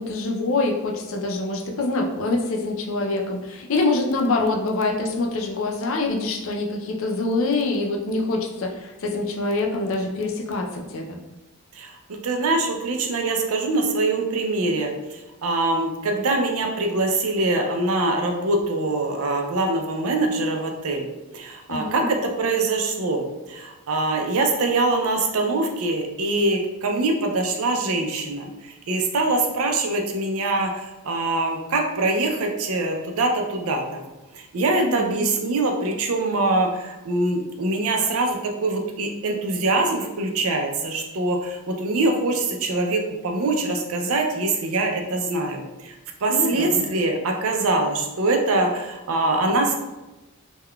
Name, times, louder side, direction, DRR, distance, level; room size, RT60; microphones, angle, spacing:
voice 1, 0.0-11.2 21.7-22.1 34.7-35.2 46.3-46.9, left 2 dB, 65° left, 1 dB, 0.4 m, -25 dB
voice 2, 11.7-21.1 21.3-34.1 34.3-46.0 46.2-49.8, right 2 dB, 75° right, 3 dB, 0.4 m, -24 dB
3.6 x 2.2 x 2.2 m, 1.1 s
head